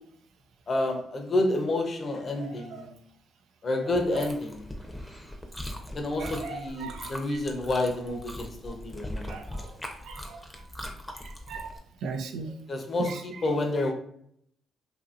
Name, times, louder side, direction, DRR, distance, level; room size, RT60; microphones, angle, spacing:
voice 1, 0.7-2.9 3.6-4.6 5.9-9.3 12.7-13.9, left 2 dB, 45° left, 4 dB, 0.7 m, -29 dB
voice 2, 2.4-2.8 3.8-4.3 6.2-7.4 9.3-9.6 10.0-10.4 11.2-11.7 12.0-12.5 13.0-13.2, right 5 dB, 75° right, 6 dB, 0.4 m, -38 dB
Chewing mastication, 3.9-11.8, left 1 dB, 10° left, 0.6 m, -40 dB
2.8 x 2.7 x 2.4 m, 0.68 s
supercardioid pair, 55°, 0 cm